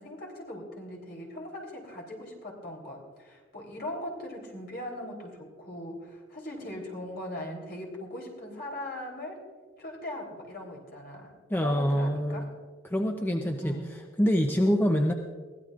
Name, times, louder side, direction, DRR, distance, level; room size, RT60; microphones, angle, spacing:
voice 1, 0.0-9.4 9.8-12.5 13.6-13.9, left 1 dB, 50° left, 0 dB, 3.5 m, -40 dB
voice 2, 11.5-12.5 12.8-13.8 14.2-15.1, equal, 10° left, 3 dB, 0.6 m, -25 dB
22.5 x 16.0 x 2.5 m, 1.5 s
head